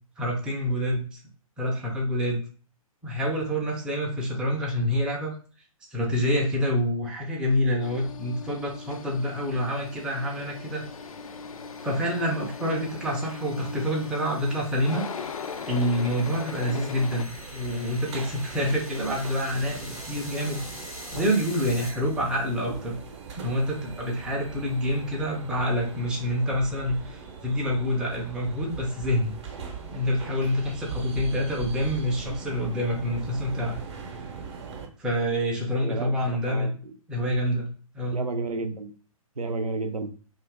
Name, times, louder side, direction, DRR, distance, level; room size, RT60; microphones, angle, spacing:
voice 1, 0.2-1.2 1.6-2.4 3.0-5.3 5.9-10.8 11.8-15.1 15.7-20.6 21.1-23.0 23.4-29.4 29.9-33.8 35.0-36.7 37.1-38.3, equal, 5° right, -2 dB, 0.4 m, -27 dB
sound 1, 7.6-22.4, left 1 dB, 90° left, 1.1 m, -46 dB
sound 2, 7.8-17.2, left 5 dB, 70° left, 0.4 m, -39 dB
sound 3, 17.3-34.9, right 6 dB, 50° right, 0.7 m, -40 dB
voice 2, 35.8-36.9 38.1-38.9 39.4-40.1, right 3 dB, 85° right, 7 dB, 0.5 m, -32 dB
2.5 x 2.4 x 3.3 m, 0.40 s
figure-of-eight pair, 125°, 18 cm